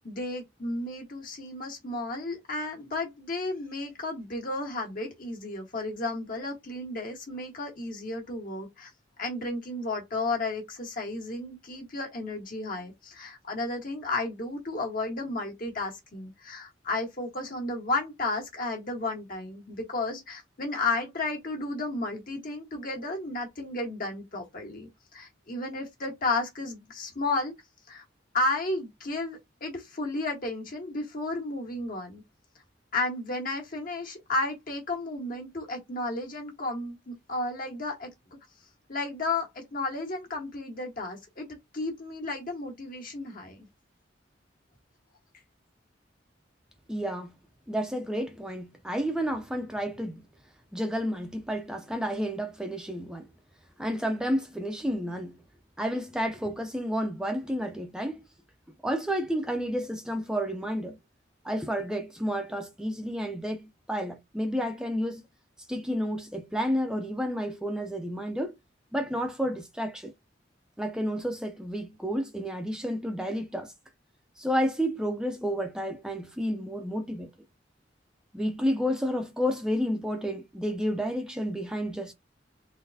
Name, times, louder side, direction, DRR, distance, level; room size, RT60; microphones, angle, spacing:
voice 1, 0.0-8.9 9.2-27.5 27.9-28.0 28.3-32.2 32.9-38.1 38.9-43.7, left 2 dB, 50° left, 1.5 m, -33 dB
voice 2, 46.9-47.3 47.7-50.2 50.7-53.3 53.8-55.4 55.8-58.2 58.8-61.0 61.4-65.2 65.7-68.6 68.9-70.1 70.8-73.7 74.4-77.3 78.3-82.1, equal, 5° right, 0.5 m, -30 dB
3.9 x 3.2 x 2.7 m
head